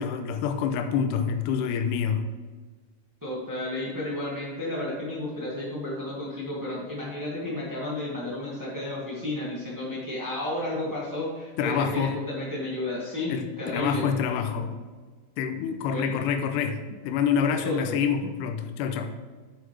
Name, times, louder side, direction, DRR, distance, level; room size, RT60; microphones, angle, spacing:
voice 1, 0.0-2.3 11.6-12.1 13.3-14.8 15.4-19.1, left 7 dB, 80° left, 7 dB, 2.0 m, -27 dB
voice 2, 3.2-14.0 15.9-16.1 17.6-17.9, left 1 dB, 10° right, -6 dB, 0.8 m, -32 dB
8.0 x 7.9 x 3.3 m, 1.4 s
omnidirectional pair, 4.0 m